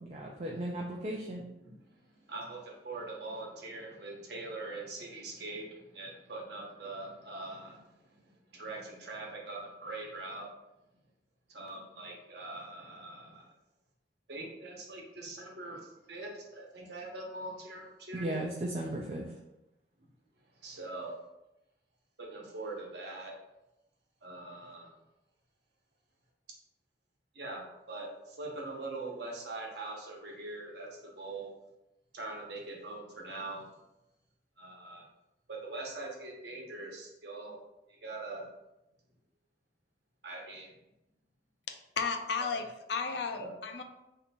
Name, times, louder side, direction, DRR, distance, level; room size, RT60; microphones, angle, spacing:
voice 1, 0.0-1.4 18.1-19.3, right 1 dB, 35° right, -1 dB, 0.4 m, -36 dB
voice 2, 1.3-10.5 11.5-13.5 14.3-18.4 20.4-21.2 22.2-23.3 24.2-24.9 27.3-31.5 32.1-33.7 34.6-35.1 35.5-37.6 37.9-38.5 40.2-40.8 42.4-42.6 43.4-43.5, right 2 dB, 70° right, -2 dB, 1.0 m, -43 dB
voice 3, 42.0-43.8, left 5 dB, 75° left, 6 dB, 0.5 m, -34 dB
3.3 x 2.8 x 4.2 m, 0.92 s
head